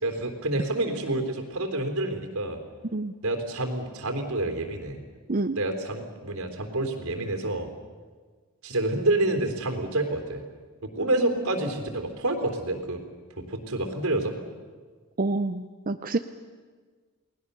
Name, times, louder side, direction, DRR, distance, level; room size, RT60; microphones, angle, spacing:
voice 1, 0.0-2.6 3.2-5.0 5.6-7.7 8.6-10.4 10.8-13.0 13.4-14.4, right 2 dB, 80° right, 5 dB, 3.6 m, -28 dB
voice 2, 15.2-16.2, right 2 dB, 40° right, 9 dB, 0.6 m, -27 dB
29.5 x 20.0 x 6.9 m, 1.5 s
head